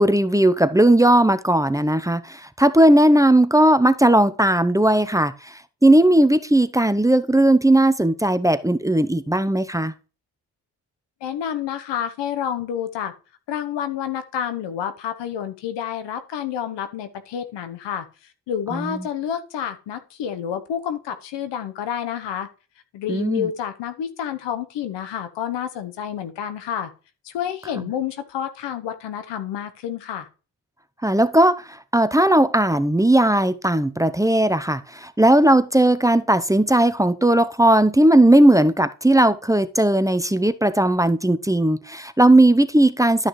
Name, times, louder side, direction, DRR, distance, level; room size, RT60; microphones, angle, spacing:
voice 1, 0.0-5.3 5.8-9.9 18.7-19.1 23.1-23.5 31.0-31.6 31.9-43.3, right 1 dB, 10° right, 0.7 m, -17 dB
voice 2, 11.2-13.1 13.5-18.1 18.5-22.5 22.9-26.9 27.2-30.3, left 9 dB, 80° left, 1.1 m, -29 dB
12.0 x 6.2 x 3.2 m
supercardioid pair, 55°, 42 cm